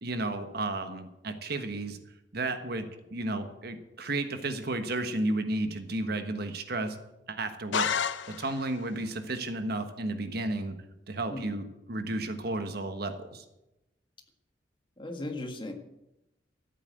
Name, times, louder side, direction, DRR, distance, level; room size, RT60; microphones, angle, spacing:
voice 1, 0.0-2.0 2.3-7.0 7.3-8.0 8.3-10.7 11.1-13.4, right 2 dB, 55° right, 8 dB, 1.3 m, -33 dB
sound 1, 7.7-8.8, left 7 dB, 80° left, 0.7 m, -30 dB
voice 2, 15.0-15.7, left 2 dB, 25° left, 4 dB, 1.7 m, -37 dB
14.0 x 8.4 x 7.9 m, 0.91 s
head